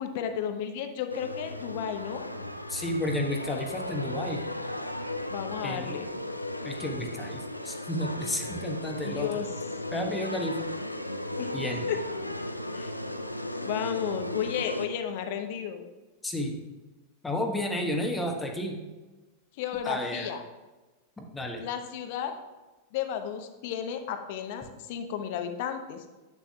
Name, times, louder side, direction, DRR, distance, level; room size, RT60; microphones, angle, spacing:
voice 1, 0.0-2.3 5.3-6.1 9.0-9.5 11.4-11.6 11.9-12.0 12.7-13.0 13.6-15.8 19.6-20.4 21.6-22.3 22.9-24.6 24.9-26.0, left 8 dB, 50° left, 7 dB, 0.8 m, -33 dB
sound 1, 1.1-14.9, left 1 dB, 90° left, 0.4 m, -36 dB
voice 2, 2.7-4.4 5.6-6.0 6.6-9.3 9.9-10.7 11.5-11.8 16.2-16.6 17.2-18.8 19.8-20.3 21.2-21.6, left 1 dB, 10° left, 2 dB, 1.2 m, -32 dB
10.0 x 8.6 x 2.3 m, 1.2 s
figure-of-eight pair, 90°, 0 cm